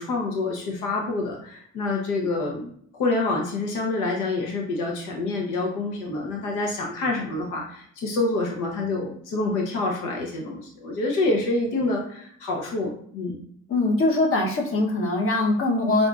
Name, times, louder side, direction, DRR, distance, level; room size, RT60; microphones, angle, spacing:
voice 1, 0.0-13.4, left 2 dB, 90° left, 0 dB, 0.8 m, -27 dB
voice 2, 13.7-16.1, left 2 dB, 45° left, 0 dB, 0.9 m, -22 dB
5.2 x 2.5 x 2.4 m, 0.64 s
cardioid pair, 90°, 30 cm